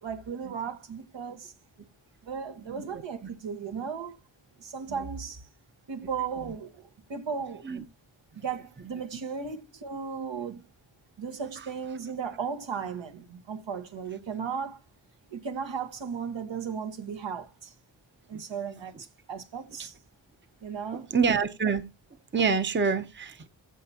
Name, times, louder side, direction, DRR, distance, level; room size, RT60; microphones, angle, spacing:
voice 1, 0.0-1.5 2.2-4.2 4.6-5.5 5.9-7.7 8.3-10.7 11.2-14.8 15.3-17.7 18.3-19.9 20.6-21.1, right 6 dB, 75° right, 1.6 m, -36 dB
voice 2, 21.1-21.8 22.3-23.5, right 5 dB, 25° right, 0.8 m, -26 dB
15.5 x 5.8 x 2.9 m
wide cardioid pair, 150°, 45 cm